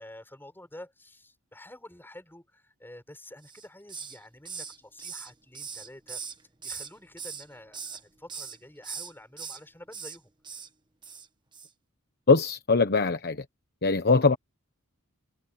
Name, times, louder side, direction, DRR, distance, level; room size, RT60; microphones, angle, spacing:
voice 1, 0.0-6.2 6.6-10.6, left 1 dB, 10° left, 7.2 m, -49 dB
Hiss, 3.4-4.2 4.5-6.9 7.2-8.0 8.3-8.6 8.8-9.6 9.9-10.2 10.4-10.7 11.0-11.3 11.5-11.7, right 6 dB, 20° right, 1.4 m, -40 dB
voice 2, 12.3-13.4 13.8-14.4, left 4 dB, 50° left, 1.1 m, -22 dB
head